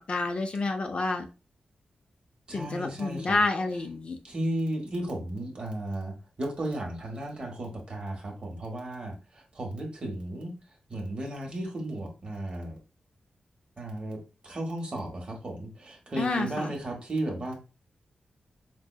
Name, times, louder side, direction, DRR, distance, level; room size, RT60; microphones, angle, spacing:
voice 1, 0.1-1.3 2.5-4.2 16.2-16.8, left 3 dB, 45° left, 5 dB, 0.5 m, -29 dB
voice 2, 2.5-3.4 4.2-10.5 10.9-12.8 13.8-17.5, right 1 dB, 40° right, 1 dB, 1.3 m, -34 dB
5.3 x 2.6 x 2.3 m, 0.31 s
wide cardioid pair, 155°, 3 cm